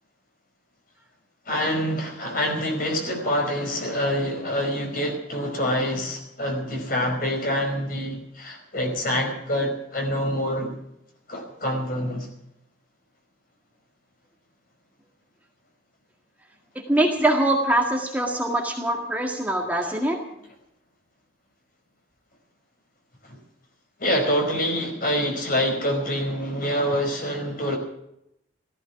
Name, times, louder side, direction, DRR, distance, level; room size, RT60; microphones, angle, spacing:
voice 1, 1.5-10.7 11.3-12.3 23.2-23.4 24.0-27.8, equal, 50° left, 4 dB, 4.9 m, -26 dB
voice 2, 16.9-20.2, right 1 dB, 10° right, 1 dB, 1.9 m, -23 dB
15.5 x 15.0 x 6.0 m, 0.80 s
head